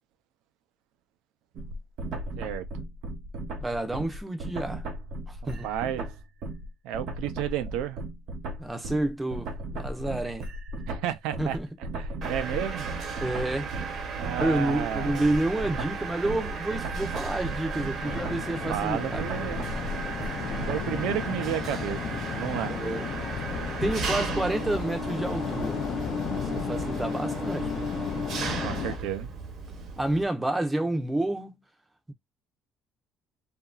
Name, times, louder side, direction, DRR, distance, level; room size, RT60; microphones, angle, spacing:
sound 1, 1.5-6.7 6.9-20.9, right 1 dB, 65° right, 1.0 m, -36 dB
voice 1, 3.6-4.9 5.3-5.7 8.6-10.5 11.4-11.7 13.2-13.7 14.4-19.2 22.7-23.1 23.8-25.8 26.5-27.7 30.0-31.6, right 1 dB, 10° right, 0.6 m, -29 dB
voice 2, 5.6-6.1 6.8-8.0 10.9-11.6 12.0-12.9 14.1-15.3 18.7-19.6 20.7-22.8 28.6-29.3, right 11 dB, 90° right, 0.5 m, -32 dB
Mechanisms, 12.2-30.2, right 3 dB, 40° right, 0.8 m, -35 dB
sound 2, 18.0-29.0, left 8 dB, 45° left, 0.4 m, -35 dB
2.8 x 2.5 x 2.2 m
cardioid pair, 155°, 0 cm